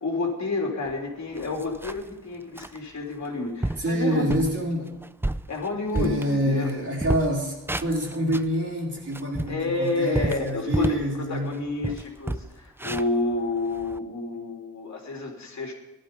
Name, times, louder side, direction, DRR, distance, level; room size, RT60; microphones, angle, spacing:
voice 1, 0.0-4.2 5.5-6.7 9.4-15.7, left 3 dB, 50° left, 0 dB, 3.2 m, -29 dB
sound 1, 0.9-1.0 1.3-2.1 2.6-2.8 3.2-3.3 3.6-3.9 4.3-4.6 5.0-6.7 7.0-8.5 9.0-11.1 11.5-11.6 11.8-14.0, right 1 dB, 5° right, 0.4 m, -30 dB
voice 2, 3.8-4.9 5.9-11.5, equal, 40° right, -2 dB, 4.6 m, -26 dB
17.5 x 12.0 x 5.3 m, 1.1 s
wide cardioid pair, 130°, 36 cm